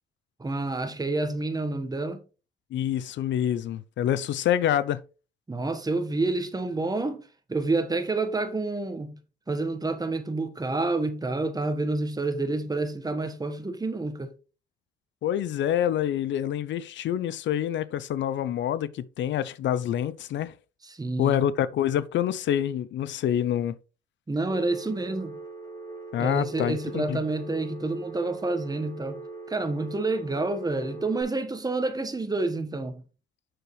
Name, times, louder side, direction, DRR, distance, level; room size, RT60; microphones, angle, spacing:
voice 1, 0.4-2.2 5.5-7.2 7.5-9.2 9.5-14.3 20.8-21.4 24.3-25.4 26.2-29.2 29.5-33.0, right 2 dB, 20° right, 1.3 m, -28 dB
voice 2, 2.7-5.0 15.2-20.5 21.2-23.8 26.1-27.2, left 10 dB, 70° left, 0.5 m, -27 dB
Telephone, 24.5-31.2, right 3 dB, 20° left, 4.6 m, -41 dB
7.6 x 6.4 x 3.2 m
cardioid pair, 90°, 20 cm